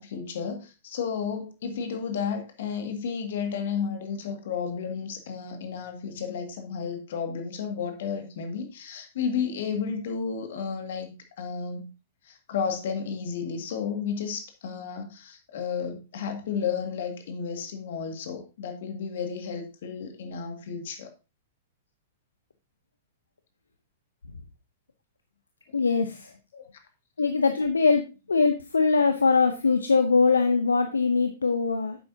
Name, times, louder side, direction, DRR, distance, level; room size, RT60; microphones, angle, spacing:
voice 1, 0.0-11.9 12.2-21.1 26.5-26.6, left 6 dB, 60° left, 5 dB, 1.9 m, -32 dB
voice 2, 25.7-26.3 27.2-28.0 28.3-32.0, left 4 dB, 80° left, 8 dB, 0.7 m, -22 dB
10.0 x 7.7 x 2.7 m, 0.29 s
figure-of-eight pair, 105°, 0 cm